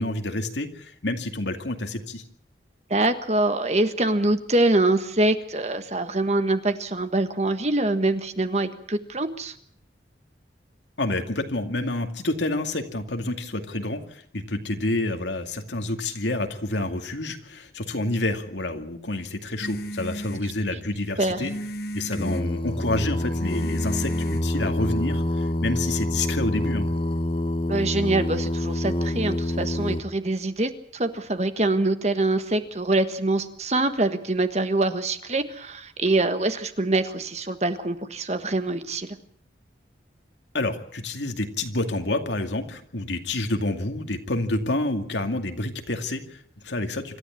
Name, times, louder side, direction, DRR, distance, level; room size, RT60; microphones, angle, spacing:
voice 1, 0.0-2.2 11.0-21.5 21.9-26.9 40.5-47.2, left 2 dB, 80° left, 6 dB, 2.3 m, -28 dB
voice 2, 2.9-9.5 21.2-21.4 27.7-39.2, right 2 dB, 35° right, 9 dB, 1.5 m, -24 dB
sound 1, 19.6-25.0, equal, 60° left, 1.3 m, -37 dB
Singing, 22.1-30.0, left 1 dB, 30° left, 0.9 m, -26 dB
26.5 x 13.5 x 8.6 m, 0.64 s
head